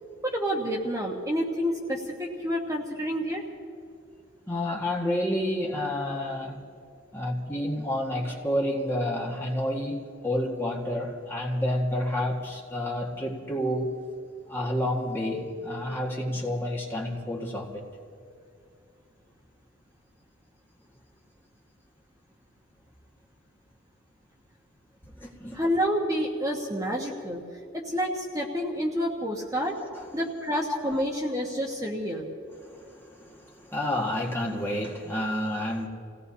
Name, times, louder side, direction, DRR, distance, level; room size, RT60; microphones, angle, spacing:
voice 1, 0.2-3.4 25.5-27.4 27.7-29.7 30.1-32.2, equal, 15° right, -1 dB, 1.3 m, -29 dB
voice 2, 4.5-6.6 7.1-14.0 14.5-17.9 25.2-25.6 29.8-30.1 30.7-31.0 32.6-35.9, left 1 dB, 10° left, -2 dB, 1.7 m, -30 dB
29.5 x 17.5 x 2.8 m, 2.5 s
head